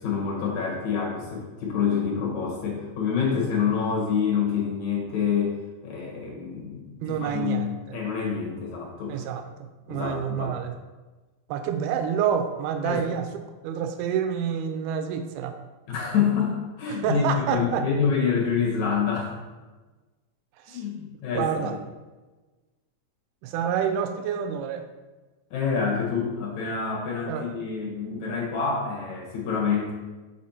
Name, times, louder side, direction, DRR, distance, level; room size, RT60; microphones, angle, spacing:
voice 1, 0.0-5.6 5.8-9.2 9.9-10.5 12.8-13.0 15.9-17.2 17.5-19.3 20.7-21.8 25.5-29.9, left 6 dB, 60° left, -3 dB, 2.3 m, -27 dB
voice 2, 7.0-8.0 9.1-9.4 9.9-10.7 11.5-13.3 13.6-15.6 16.9-17.9 20.6-20.8 21.3-21.8 23.4-24.8 27.3-27.5, right 8 dB, 90° right, 7 dB, 2.5 m, -28 dB
6.3 x 4.3 x 4.2 m, 1.2 s
omnidirectional pair, 4.3 m